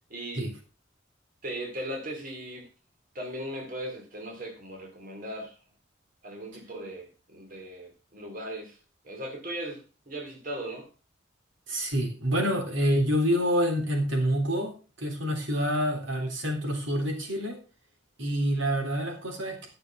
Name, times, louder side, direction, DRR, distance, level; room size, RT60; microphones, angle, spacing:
voice 1, 0.1-0.5 1.4-2.7 3.1-5.6 6.2-8.8 9.0-10.9, right 1 dB, 45° right, 1 dB, 2.5 m, -38 dB
voice 2, 11.7-17.6 18.2-19.7, equal, 80° right, 2 dB, 3.6 m, -27 dB
12.0 x 6.7 x 5.7 m, 0.34 s
head